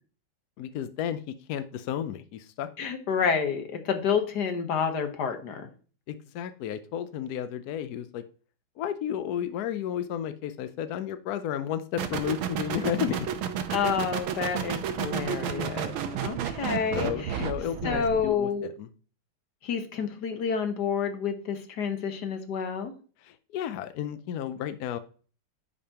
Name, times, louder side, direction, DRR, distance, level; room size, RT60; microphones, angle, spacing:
voice 1, 0.6-2.7 6.1-8.2 8.8-13.3 16.9-18.9 23.2-25.0, left 9 dB, 75° left, 11 dB, 0.8 m, -32 dB
voice 2, 2.8-5.7 13.7-15.9 16.2-17.5 17.8-18.7 19.6-22.9, left 6 dB, 55° left, 6 dB, 1.6 m, -29 dB
sound 1, 12.0-18.3, right 8 dB, 85° right, 1.6 m, -32 dB
11.0 x 5.2 x 2.9 m, 0.39 s
omnidirectional pair, 2.3 m